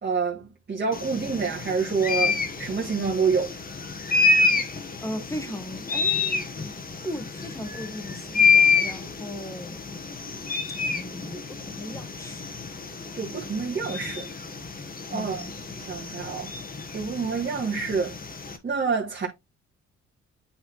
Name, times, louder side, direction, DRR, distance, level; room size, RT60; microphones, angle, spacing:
voice 1, 0.0-3.5 13.1-14.3 15.1-15.5 15.8-16.5 16.9-18.2 18.6-19.3, right 5 dB, 35° right, 1.9 m, -27 dB
sound 1, 0.9-18.6, left 4 dB, 30° left, 1.2 m, -28 dB
voice 2, 5.0-6.5 7.0-9.8 10.9-12.4 15.1-15.6, equal, 10° left, 1.3 m, -37 dB
8.5 x 4.3 x 3.0 m
cardioid pair, 90°, 30 cm